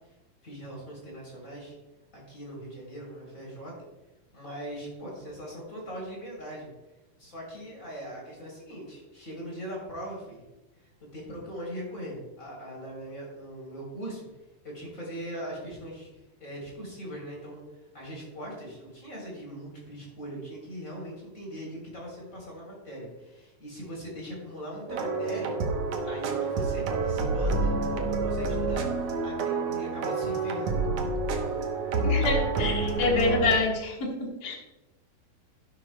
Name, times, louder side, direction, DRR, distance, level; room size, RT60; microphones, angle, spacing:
voice 1, 0.4-1.8 2.1-3.7 4.3-6.7 7.2-10.4 10.8-14.3 14.6-17.6 17.9-25.6 26.0-28.9 29.2-30.8, equal, 20° left, -3 dB, 3.7 m, -40 dB
sound 1, 24.9-33.6, right 3 dB, 80° right, 1.4 m, -28 dB
voice 2, 32.0-34.5, left 3 dB, 75° left, -1 dB, 0.9 m, -27 dB
11.5 x 11.5 x 2.2 m, 1.0 s
omnidirectional pair, 4.4 m